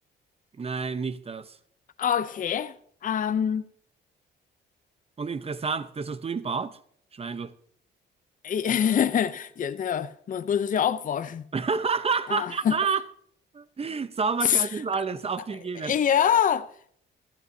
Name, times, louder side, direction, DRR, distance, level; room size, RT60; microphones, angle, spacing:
voice 1, 0.6-1.6 5.2-6.8 7.1-7.5 11.5-13.0 13.5-15.9, right 5 dB, 30° right, 0.8 m, -29 dB
voice 2, 2.0-2.7 3.0-3.6 8.4-11.4 12.3-12.8 14.4-14.7 15.8-16.9, left 8 dB, 40° left, 0.6 m, -25 dB
15.0 x 14.0 x 2.7 m
cardioid pair, 90°, 20 cm